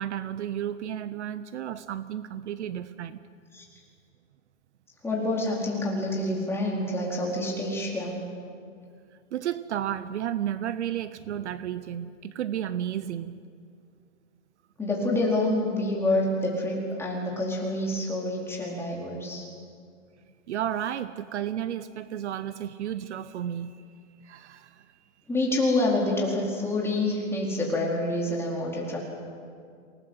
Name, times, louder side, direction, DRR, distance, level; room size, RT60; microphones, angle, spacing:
voice 1, 0.0-3.2 9.3-13.4 20.5-23.8 24.2-24.8, right 10 dB, 60° right, 14 dB, 1.0 m, -32 dB
voice 2, 5.0-8.1 14.8-19.5 25.3-29.0, left 1 dB, 5° left, -3 dB, 4.5 m, -27 dB
27.0 x 19.0 x 8.2 m, 2.3 s
hypercardioid pair, 150°, 39 cm